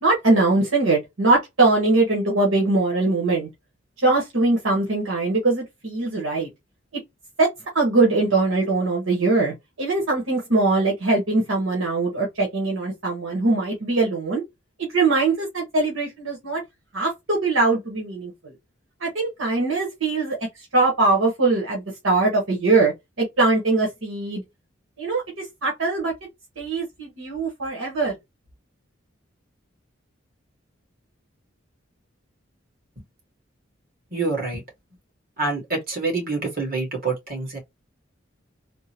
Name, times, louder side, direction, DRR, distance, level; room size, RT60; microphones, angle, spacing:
voice 1, 0.0-3.5 4.0-6.5 7.4-7.5 7.7-14.4 14.8-16.6 16.9-18.5 19.0-22.9 23.2-24.4 25.0-26.1 26.6-28.1, right 3 dB, 85° right, 1.3 m, -22 dB
voice 2, 34.1-34.6 35.4-37.6, right 3 dB, 45° right, 2.0 m, -26 dB
3.7 x 2.1 x 2.9 m
head